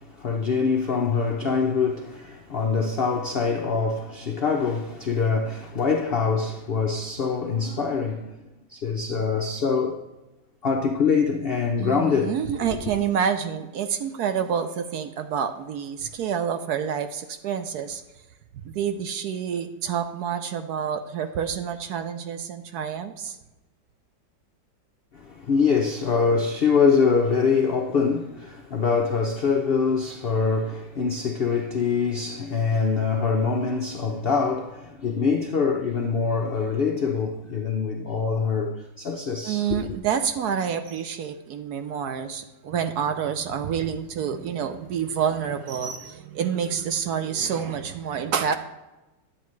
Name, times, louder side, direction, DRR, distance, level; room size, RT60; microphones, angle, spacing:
voice 1, 0.0-8.4 8.7-10.0 10.6-12.4 25.1-39.8, left 5 dB, 70° left, 0.5 m, -24 dB
voice 2, 11.8-18.0 18.6-23.4 39.4-48.6, right 8 dB, 70° right, 1.1 m, -28 dB
10.0 x 7.9 x 3.1 m
omnidirectional pair, 1.9 m